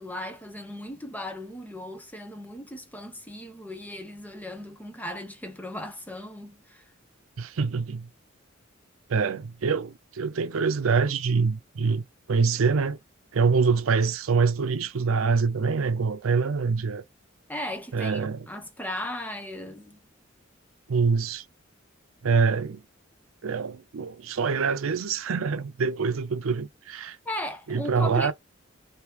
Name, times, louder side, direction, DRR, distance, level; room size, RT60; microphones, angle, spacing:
voice 1, 0.0-6.9 17.5-20.0 27.3-28.3, left 1 dB, 10° left, 0.6 m, -37 dB
voice 2, 7.4-8.1 9.1-13.0 13.3-17.0 17.9-18.5 20.9-21.4 22.2-22.8 23.4-27.2 27.7-28.3, right 5 dB, 90° right, 0.5 m, -25 dB
2.9 x 2.7 x 3.4 m
head